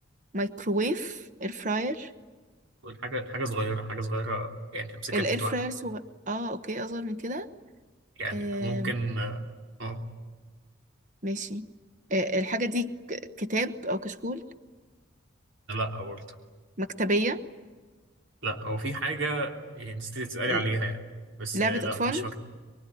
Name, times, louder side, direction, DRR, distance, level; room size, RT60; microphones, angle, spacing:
voice 1, 0.3-2.1 5.1-7.5 8.3-8.9 11.2-11.7 12.1-14.4 16.8-17.4 20.5-20.6 21.5-22.2, right 1 dB, 40° right, 10 dB, 1.2 m, -30 dB
voice 2, 2.8-5.5 8.2-9.4 9.8-10.0 15.7-16.2 18.4-21.0 21.4-22.4, right 2 dB, 70° right, 2 dB, 3.4 m, -32 dB
24.5 x 23.5 x 10.0 m, 1.4 s
head